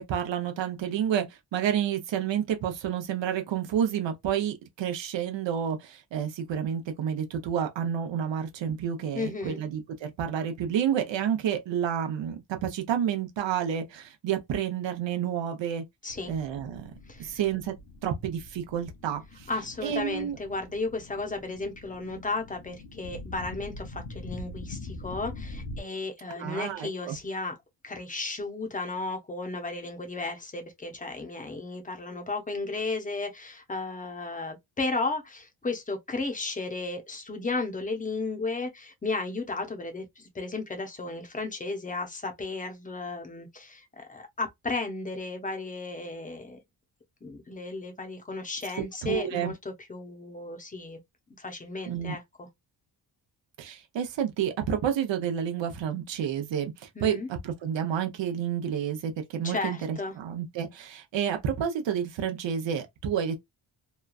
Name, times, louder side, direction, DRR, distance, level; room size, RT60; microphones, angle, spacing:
voice 1, 0.0-15.8 16.3-16.9 17.2-17.7 18.0-19.5 19.8-20.4 26.3-27.2 49.0-49.5 51.9-52.1 53.6-63.4, right 9 dB, 75° right, 0.8 m, -30 dB
voice 2, 9.1-9.6 16.0-16.3 17.1-17.4 19.5-27.5 27.8-46.6 47.2-51.0 51.4-52.5 57.0-57.3 59.4-60.1, left 3 dB, 20° left, 0.6 m, -34 dB
sound 1, 16.1-25.8, left 2 dB, 70° left, 0.9 m, -43 dB
3.0 x 2.3 x 2.3 m
wide cardioid pair, 165°, 45 cm